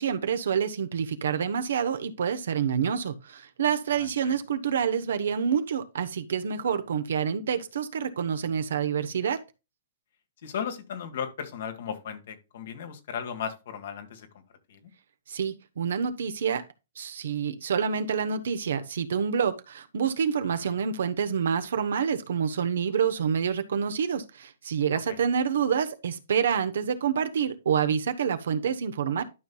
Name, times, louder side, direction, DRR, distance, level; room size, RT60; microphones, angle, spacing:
voice 1, 0.0-9.4 15.3-16.6 17.0-29.2, right 7 dB, 75° right, 0.9 m, -27 dB
voice 2, 3.9-4.3 10.4-14.3 14.7-14.8 20.6-20.8 25.1-25.2, left 7 dB, 65° left, 1.7 m, -36 dB
12.0 x 5.4 x 2.3 m
hypercardioid pair, 130°, 0 cm